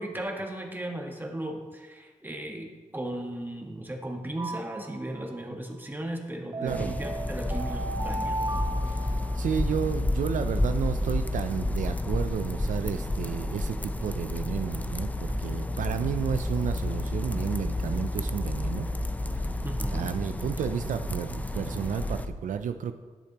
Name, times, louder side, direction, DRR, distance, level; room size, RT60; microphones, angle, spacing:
voice 1, 0.0-8.3 19.6-20.1, right 1 dB, 15° right, 0 dB, 1.5 m, -36 dB
sound 1, 4.4-5.4 6.5-9.8, right 2 dB, 30° right, 0.8 m, -36 dB
voice 2, 6.6-7.0 8.8-18.9 19.9-22.9, right 8 dB, 80° right, 9 dB, 0.4 m, -32 dB
sound 2, 6.7-22.3, left 1 dB, 10° left, 0.5 m, -31 dB
sound 3, 9.7-22.3, equal, 85° left, 2.4 m, -38 dB
11.0 x 6.6 x 3.0 m, 1.4 s
cardioid pair, 55°, 13 cm